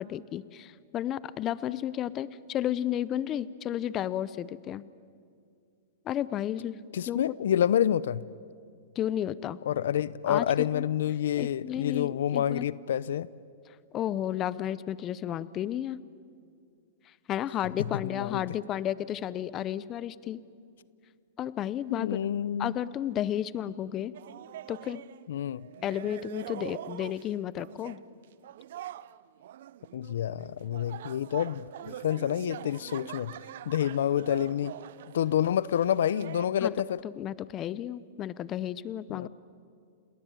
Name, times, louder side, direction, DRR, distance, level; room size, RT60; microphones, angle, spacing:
voice 1, 0.0-4.8 6.0-6.8 7.1-7.3 9.0-9.6 10.3-10.8 11.4-12.7 13.9-16.0 17.1-20.4 21.4-22.2 22.6-24.1 24.7-25.0 25.8-28.0 36.6-36.7 37.0-39.3, left 11 dB, 25° left, 18 dB, 0.7 m, -32 dB
voice 2, 6.9-8.2 9.7-13.3 18.0-18.4 21.9-22.8 25.3-25.7 29.9-33.3 33.7-34.8 35.1-37.0 39.1-39.3, left 10 dB, 75° left, 20 dB, 0.6 m, -28 dB
sound 1, 24.1-25.2 25.5-27.3 27.6-28.0 28.4-36.5, right 12 dB, 65° right, 0.6 m, -44 dB
29.5 x 19.0 x 9.1 m, 2.4 s
hypercardioid pair, 140°, 0 cm